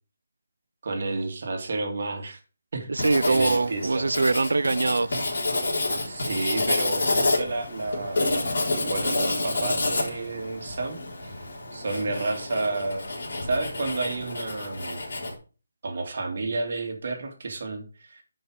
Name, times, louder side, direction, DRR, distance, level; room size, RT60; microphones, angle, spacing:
voice 1, 0.8-2.4 2.7-2.9 3.3-4.1 6.1-8.4 8.8-11.4 11.7-13.1 13.4-15.0 15.8-18.2, right 3 dB, 40° right, 2.2 m, -31 dB
voice 2, 2.9-5.2 6.1-6.2, right 3 dB, 85° right, 0.5 m, -23 dB
Writing, 3.0-15.3, left 2 dB, 55° left, 3.8 m, -29 dB
11.0 x 5.5 x 4.8 m
hypercardioid pair, 180°, 0 cm